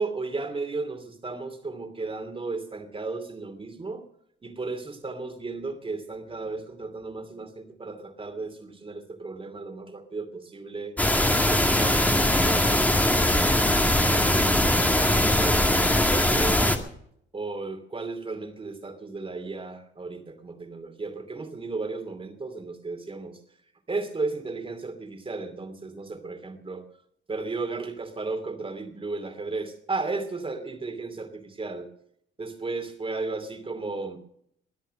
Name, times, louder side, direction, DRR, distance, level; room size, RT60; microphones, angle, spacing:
voice 1, 0.0-4.0 4.4-10.9 11.3-16.7 17.3-23.4 23.9-26.8 27.3-31.9 32.4-34.2, right 3 dB, 25° right, 8 dB, 2.6 m, -34 dB
sound 1, 11.0-16.8, left 1 dB, 10° left, 1.9 m, -21 dB
22.5 x 8.1 x 6.5 m, 0.70 s
cardioid pair, 90°, 20 cm